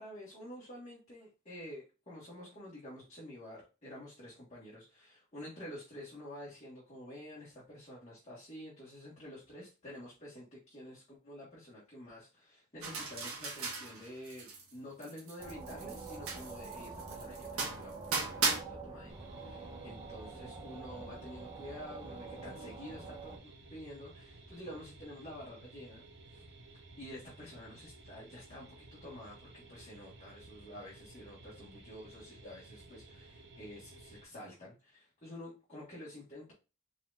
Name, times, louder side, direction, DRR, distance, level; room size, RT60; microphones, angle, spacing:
voice 1, 0.0-26.5 27.0-36.5, left 1 dB, 30° left, -6 dB, 1.6 m, -49 dB
sound 1, 12.8-14.7 15.0-18.6, right 4 dB, 70° right, 1.3 m, -37 dB
sound 2, 15.4-23.4, right 3 dB, 20° right, 1.1 m, -46 dB
sound 3, 19.1-34.2, right 2 dB, 50° right, 0.9 m, -55 dB
4.7 x 3.8 x 2.5 m, 0.30 s
head